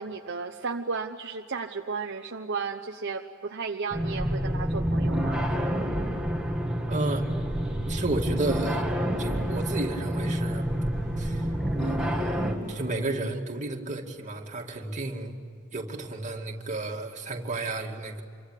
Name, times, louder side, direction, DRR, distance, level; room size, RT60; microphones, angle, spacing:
voice 1, 0.0-5.4, right 4 dB, 55° right, 3 dB, 1.0 m, -34 dB
sound 1, 3.9-12.6, equal, 5° right, 2.3 m, -28 dB
voice 2, 6.9-7.3 7.9-8.9 9.2-10.7 11.2-11.5 11.8-15.4 15.7-18.2, right 2 dB, 35° right, 1 dB, 2.5 m, -32 dB
sound 2, 7.5-13.1, right 2 dB, 55° left, 6.6 m, -43 dB
27.5 x 24.0 x 8.4 m, 2.3 s
head